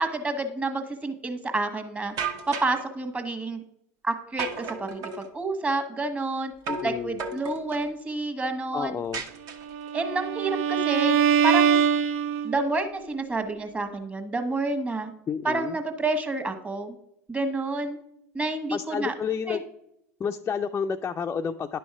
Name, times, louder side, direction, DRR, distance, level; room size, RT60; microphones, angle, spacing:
voice 1, 0.0-2.1 2.5-3.6 4.0-6.5 6.8-9.0 9.9-11.8 12.4-15.1 15.4-17.0 17.3-18.0 18.3-19.1 19.5-19.6, right 2 dB, 15° right, 6 dB, 1.3 m, -29 dB
sound 1, 2.2-2.8 4.4-5.3 6.7-6.9 7.2-7.9 9.1-9.9, right 5 dB, 50° right, 1.0 m, -33 dB
voice 2, 6.7-7.2 8.7-9.2 15.3-15.8 18.7-19.6 20.2-21.8, left 6 dB, 25° left, 4 dB, 0.4 m, -30 dB
Bowed string instrument, 9.7-12.8, right 7 dB, 70° right, 0.5 m, -23 dB
10.5 x 5.3 x 4.7 m, 0.79 s
hypercardioid pair, 80°, 8 cm